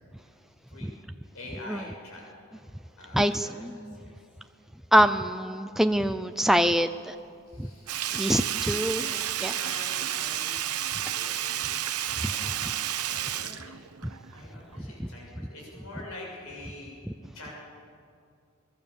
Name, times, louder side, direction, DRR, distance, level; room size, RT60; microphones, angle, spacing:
voice 1, 1.3-2.2 3.0-4.1 7.5-8.1 8.6-13.7 14.3-17.0 17.3-17.5, left 1 dB, 70° left, -2 dB, 7.4 m, -45 dB
voice 2, 3.1-3.9 4.9-7.2 7.6-7.7 8.1-9.1 9.4-9.5 15.0-15.1, equal, ahead, 8 dB, 0.5 m, -24 dB
Sink (filling or washing), 7.9-14.4 14.7-14.8, right 11 dB, 90° right, 1.0 m, -31 dB
24.0 x 21.5 x 7.1 m, 2.4 s
head